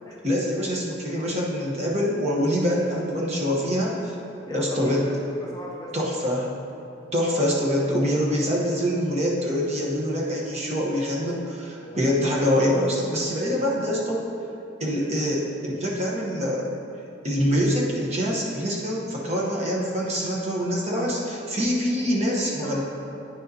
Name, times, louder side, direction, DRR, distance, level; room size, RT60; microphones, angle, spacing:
voice 1, 0.2-4.1 4.5-5.1 5.9-6.5 7.1-14.3 14.8-16.7 17.2-22.8, equal, 30° right, -3 dB, 0.9 m, -25 dB
voice 2, 4.5-6.0 11.8-12.2 14.9-15.1 22.4-22.8, left 2 dB, 20° left, -3 dB, 0.5 m, -38 dB
9.0 x 6.4 x 2.7 m, 2.8 s
head